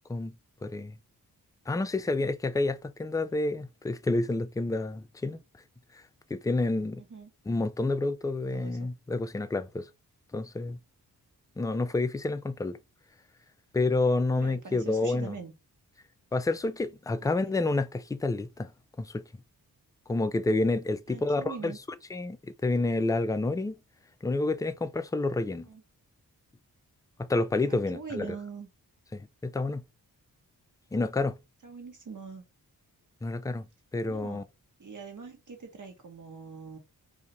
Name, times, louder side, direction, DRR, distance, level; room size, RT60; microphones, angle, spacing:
voice 1, 0.6-1.0 1.7-5.4 5.9-6.0 6.3-7.0 7.5-9.9 10.3-10.8 11.6-12.8 13.7-15.4 16.3-18.7 19.0-19.2 20.1-21.7 22.1-23.8 24.2-25.7 27.2-28.3 29.1-29.8 30.9-31.4 33.2-33.7 33.9-34.4, left 2 dB, 10° left, 0.3 m, -29 dB
voice 2, 7.0-7.3 8.5-8.9 14.4-15.5 17.2-17.5 21.1-21.8 25.6-25.8 27.7-28.7 31.6-32.4 34.1-34.4 34.8-36.8, right 5 dB, 50° right, 1.3 m, -43 dB
2.8 x 2.5 x 4.2 m
cardioid pair, 50°, 39 cm